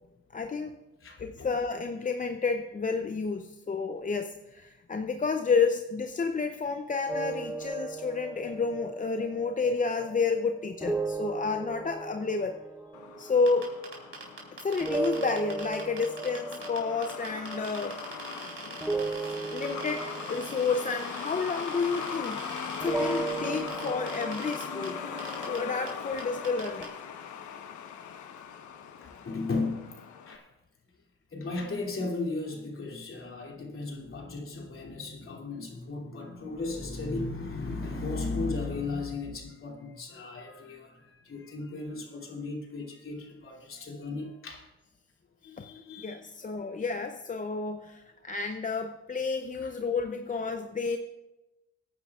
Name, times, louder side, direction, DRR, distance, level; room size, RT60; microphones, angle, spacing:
voice 1, 0.3-0.7 1.2-12.6 13.2-13.7 14.5-18.0 19.5-22.4 22.8-25.0 25.5-27.0 45.6-45.7 46.0-51.0, left 4 dB, 25° left, 6 dB, 0.7 m, -30 dB
voice 2, 1.0-1.5 18.7-18.9 29.0-29.8 30.3-30.4 31.3-44.6 45.4-46.3 49.6-49.7, left 3 dB, 45° left, 0 dB, 2.8 m, -36 dB
sound 1, 7.1-14.5 14.8-22.4 22.8-26.9, right 3 dB, 5° right, 0.8 m, -37 dB
Truck, 12.9-30.4, left 7 dB, 75° left, 1.2 m, -40 dB
sound 2, 13.5-16.8 17.0-24.9 25.2-25.6 25.9-26.0 26.2-26.9, right 4 dB, 45° right, 4.1 m, -42 dB
23.5 x 9.7 x 2.4 m, 0.98 s
cardioid pair, 90°, 30 cm